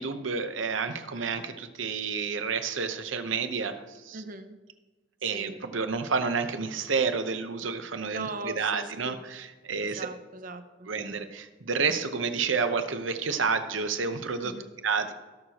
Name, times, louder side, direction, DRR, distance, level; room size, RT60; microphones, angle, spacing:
voice 1, 0.0-3.8 4.0-4.2 5.2-10.1 10.9-14.5 14.8-15.1, right 5 dB, 85° right, 8 dB, 0.8 m, -30 dB
voice 2, 4.1-4.6 5.3-5.6 8.1-9.2 9.8-10.9 14.4-14.7, right 3 dB, 45° right, 9 dB, 0.7 m, -40 dB
17.5 x 6.4 x 3.0 m, 1.3 s
head